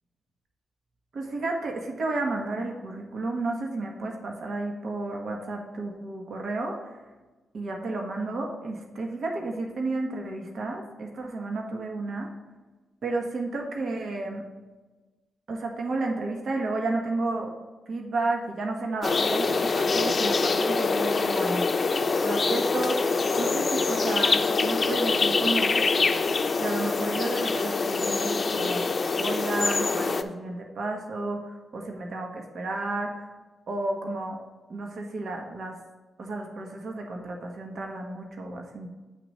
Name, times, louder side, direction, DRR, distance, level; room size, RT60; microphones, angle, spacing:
voice 1, 1.1-7.0 7.5-12.3 13.0-14.4 15.5-17.6 17.9-21.7 22.2-25.7 26.5-28.9 29.2-33.3 33.7-34.4 34.7-35.8 36.2-38.9, right 2 dB, 65° right, 2 dB, 1.2 m, -32 dB
sound 1, 19.0-30.2, left 4 dB, 50° left, 0.6 m, -25 dB
8.5 x 3.0 x 6.4 m, 1.2 s
supercardioid pair, 55°, 0 cm